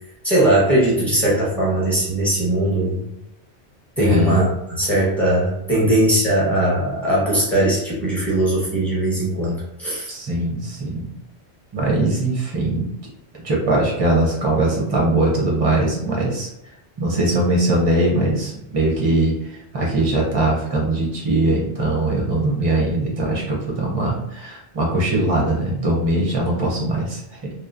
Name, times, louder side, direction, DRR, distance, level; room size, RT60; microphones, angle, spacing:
voice 1, 0.2-3.1 4.0-10.1, right 1 dB, ahead, -7 dB, 0.7 m, -19 dB
voice 2, 4.0-4.4 5.7-5.9 10.1-11.1 11.7-12.9 13.4-16.5 17.0-27.5, right 1 dB, 35° right, -3 dB, 0.5 m, -21 dB
2.9 x 2.1 x 2.4 m, 0.82 s
omnidirectional pair, 1.1 m